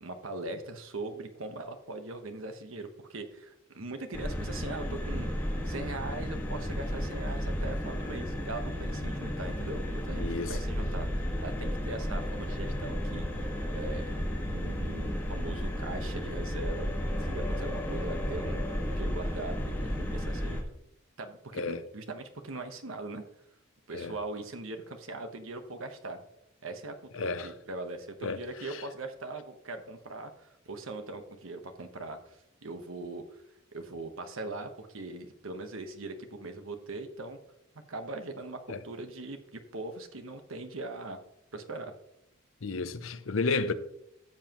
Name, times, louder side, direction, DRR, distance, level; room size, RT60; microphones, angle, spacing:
voice 1, 0.0-14.2 14.5-20.6 21.2-23.2 23.9-26.2 26.6-33.4 33.7-37.4 37.9-41.2 41.5-41.9, right 2 dB, 80° right, 1.2 m, -41 dB
sound 1, 4.1-20.6, equal, 10° left, 1.6 m, -33 dB
voice 2, 10.2-10.6 21.5-21.8 23.9-24.2 27.1-27.5 28.2-28.4 28.7-28.8 38.7-38.8 42.6-43.7, left 4 dB, 70° left, 0.7 m, -32 dB
13.0 x 7.4 x 3.0 m
head